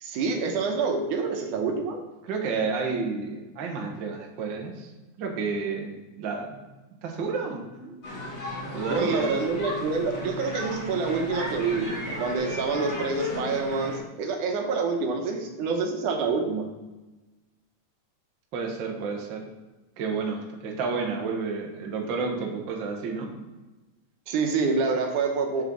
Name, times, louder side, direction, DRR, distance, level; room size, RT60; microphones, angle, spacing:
voice 1, 0.0-2.0 8.9-11.9 12.2-16.6 24.3-25.6, right 4 dB, 75° right, 3 dB, 2.3 m, -27 dB
voice 2, 2.2-4.9 5.2-6.6 7.0-8.0 8.7-9.3 18.5-19.5 20.0-23.4, right 4 dB, 55° right, 0 dB, 1.4 m, -31 dB
sound 1, 8.0-14.0, left 1 dB, 35° left, 2.0 m, -34 dB
7.4 x 6.5 x 3.9 m, 1.1 s
omnidirectional pair, 3.7 m